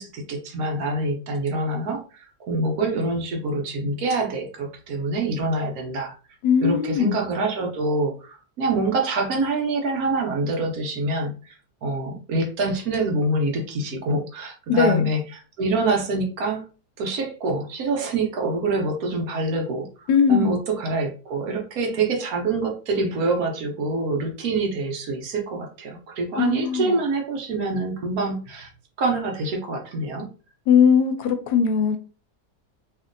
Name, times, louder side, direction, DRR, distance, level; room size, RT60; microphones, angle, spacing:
voice 1, 0.0-6.2 6.6-15.2 15.6-16.6 17.0-19.9 20.3-28.7 29.0-30.3, right 2 dB, 70° right, 2 dB, 1.2 m, -26 dB
voice 2, 6.4-7.2 14.7-15.1 20.1-20.5 26.4-26.9 30.7-32.0, left 7 dB, 90° left, 8 dB, 1.2 m, -19 dB
2.9 x 2.6 x 2.5 m, 0.37 s
omnidirectional pair, 1.7 m